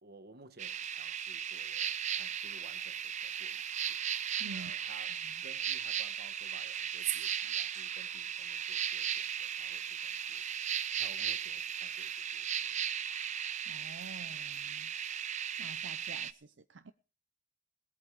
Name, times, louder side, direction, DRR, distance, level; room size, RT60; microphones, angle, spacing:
voice 1, 0.0-4.0 4.5-10.6 11.0-12.9, right 3 dB, 60° right, 1.4 m, -57 dB
sound 1, 0.6-16.3, right 9 dB, 40° right, 0.6 m, -36 dB
voice 2, 4.4-4.7 5.2-5.3 13.7-14.9 15.6-16.9, right 3 dB, 80° right, 0.7 m, -48 dB
20.0 x 8.6 x 4.8 m
head